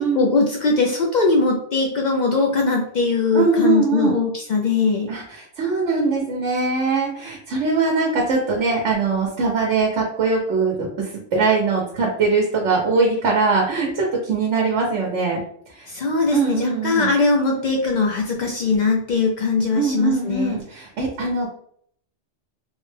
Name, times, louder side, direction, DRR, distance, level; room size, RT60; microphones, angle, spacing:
voice 1, 0.1-5.1 15.9-20.6, left 3 dB, 60° left, 1 dB, 0.5 m, -20 dB
voice 2, 3.3-4.2 5.1-15.4 15.7-15.9 16.3-17.1 19.7-21.5, right 4 dB, 85° right, -1 dB, 1.1 m, -21 dB
3.6 x 2.1 x 3.2 m, 0.64 s
omnidirectional pair, 1.2 m